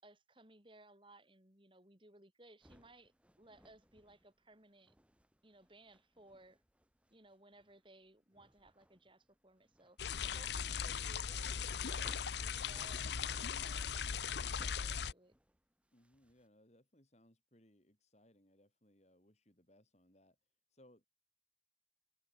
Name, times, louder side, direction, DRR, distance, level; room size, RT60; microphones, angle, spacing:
voice 1, 0.0-4.9 5.4-6.6 7.1-10.0 10.3-15.3, right 1 dB, 25° right, 4.9 m, -62 dB
sound 1, 2.6-16.5, equal, 5° right, 2.9 m, -67 dB
sound 2, 10.0-15.1, left 7 dB, 65° left, 0.7 m, -39 dB
voice 2, 15.9-20.4 20.7-21.1, left 1 dB, 35° left, 4.4 m, -67 dB
head